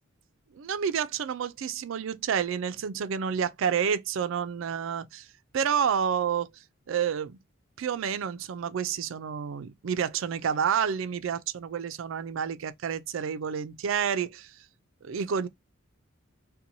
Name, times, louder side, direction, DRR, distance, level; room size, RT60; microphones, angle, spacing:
voice 1, 0.5-5.3 5.5-6.6 6.9-7.4 7.8-14.6 15.0-15.5, right 7 dB, 65° right, 0.4 m, -29 dB
2.8 x 2.2 x 2.6 m
head